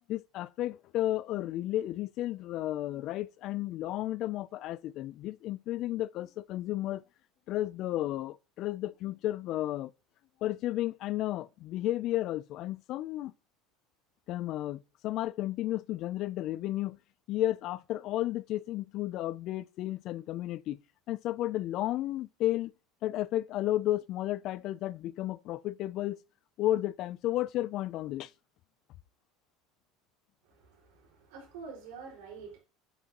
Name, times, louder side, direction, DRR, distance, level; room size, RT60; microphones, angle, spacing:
voice 1, 0.1-7.0 7.5-9.9 10.4-13.3 14.3-17.0 17.3-20.8 21.1-22.7 23.0-26.2 26.6-28.3, left 14 dB, 45° left, 0.3 m, -33 dB
voice 2, 30.4-32.6, right 5 dB, 85° right, 4.7 m, -47 dB
8.7 x 6.2 x 2.9 m
cardioid pair, 155°, 0 cm